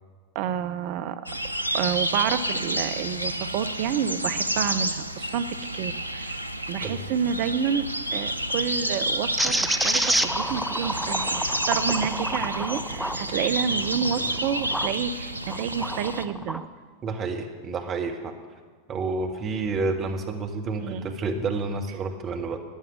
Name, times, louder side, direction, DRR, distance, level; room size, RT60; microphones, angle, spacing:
voice 1, 0.3-1.3 1.7-6.4 6.7-9.6 9.8-16.6 20.8-21.2, right 8 dB, 45° right, 10 dB, 0.7 m, -29 dB
sound 1, 1.3-16.3, right 1 dB, 90° right, 0.5 m, -30 dB
sound 2, 9.4-14.9 15.4-16.6, right 1 dB, ahead, 0.5 m, -29 dB
voice 2, 17.0-18.3 18.9-22.6, right 3 dB, 30° right, 4 dB, 1.6 m, -29 dB
14.0 x 9.9 x 6.2 m, 1.5 s
figure-of-eight pair, 90°, 0 cm